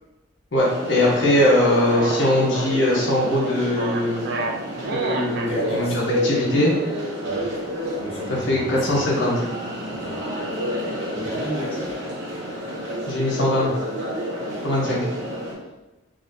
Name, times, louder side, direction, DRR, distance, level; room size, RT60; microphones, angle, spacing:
voice 1, 0.5-4.2 4.9-6.7 8.3-9.4 13.1-13.7 14.6-15.0, left 1 dB, 75° left, -4 dB, 1.0 m, -21 dB
sound 1, 0.6-15.5, equal, 85° right, 0.9 m, -30 dB
sound 2, 1.4-5.5, right 3 dB, 60° right, 0.5 m, -30 dB
voice 2, 5.5-6.0 7.2-7.5 8.0-8.4 9.9-10.2 11.1-11.9, right 1 dB, 30° left, -5 dB, 0.5 m, -32 dB
3.7 x 2.7 x 2.7 m, 1.0 s
head